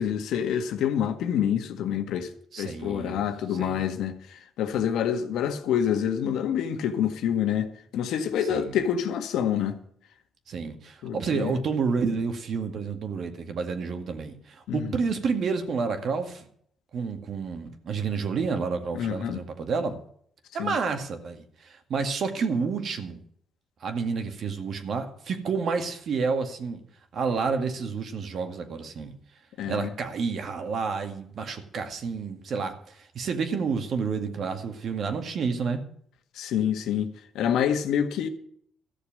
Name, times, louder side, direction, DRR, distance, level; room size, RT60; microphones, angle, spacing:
voice 1, 0.0-2.3 2.6-4.2 4.6-9.8 11.0-11.5 14.7-14.9 18.9-19.4 20.6-20.7 29.6-29.9 36.4-38.3, left 9 dB, 85° left, 1.6 m, -27 dB
voice 2, 2.5-3.9 8.4-8.8 10.5-16.5 16.9-20.0 20.5-23.2 23.8-26.8 27.1-29.1 29.7-35.8, right 5 dB, 60° right, 2.1 m, -30 dB
14.0 x 6.8 x 8.8 m
cardioid pair, 90°, 0 cm